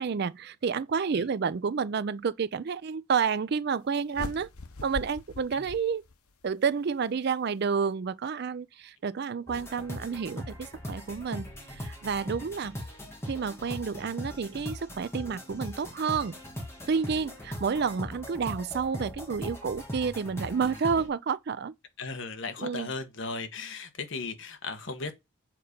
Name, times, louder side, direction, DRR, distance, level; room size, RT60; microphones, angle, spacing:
voice 1, 0.0-4.5 4.8-6.0 6.4-12.8 13.3-16.4 16.9-21.7 22.6-22.9, right 6 dB, 50° right, 0.4 m, -30 dB
sound 1, 4.1-6.5, left 2 dB, 85° left, 1.1 m, -41 dB
sound 2, 9.5-21.1, equal, 10° left, 1.9 m, -40 dB
voice 2, 22.0-25.1, left 3 dB, 55° left, 1.2 m, -36 dB
7.6 x 4.1 x 5.1 m
head